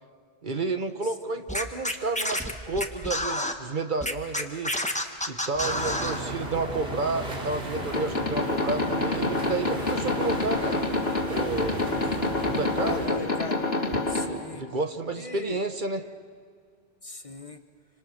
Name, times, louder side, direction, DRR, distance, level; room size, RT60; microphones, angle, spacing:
voice 1, 0.4-4.7 5.3-10.8 11.3-11.9 12.4-13.2 14.5-16.1, right 3 dB, 50° right, 8 dB, 1.3 m, -31 dB
Scratching (performance technique), 1.5-3.5 4.0-6.2, left 1 dB, 5° left, 1.4 m, -29 dB
sound 1, 5.6-13.1, right 1 dB, 70° right, 3.1 m, -35 dB
sound 2, 7.7-14.3, left 2 dB, 70° left, 2.7 m, -28 dB
voice 2, 12.7-13.7 14.1-14.6 15.1-15.6 17.0-17.6, left 3 dB, 35° left, 8 dB, 1.2 m, -37 dB
28.5 x 26.0 x 6.6 m, 2.1 s
omnidirectional pair, 1.1 m